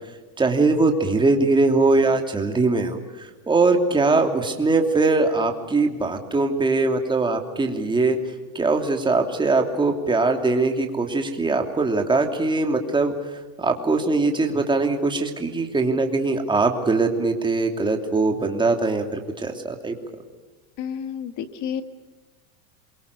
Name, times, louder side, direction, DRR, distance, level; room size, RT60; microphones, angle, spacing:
voice 1, 0.4-8.2 8.5-13.1 13.6-20.0, right 3 dB, 10° right, 4 dB, 2.8 m, -21 dB
voice 2, 20.8-21.8, left 8 dB, 40° left, 9 dB, 2.1 m, -30 dB
27.0 x 24.0 x 6.8 m, 1.3 s
supercardioid pair, 145°, 43 cm